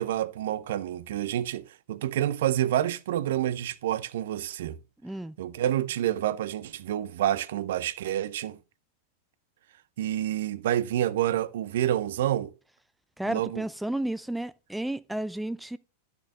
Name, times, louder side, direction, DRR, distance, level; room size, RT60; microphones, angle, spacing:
voice 1, 0.0-4.8 5.4-8.6 10.0-12.5 13.3-13.6, right 12 dB, 55° right, 0.5 m, -28 dB
voice 2, 5.0-5.4 13.2-15.8, right 1 dB, 5° right, 0.4 m, -32 dB
11.5 x 6.7 x 2.5 m
figure-of-eight pair, 90°, 0 cm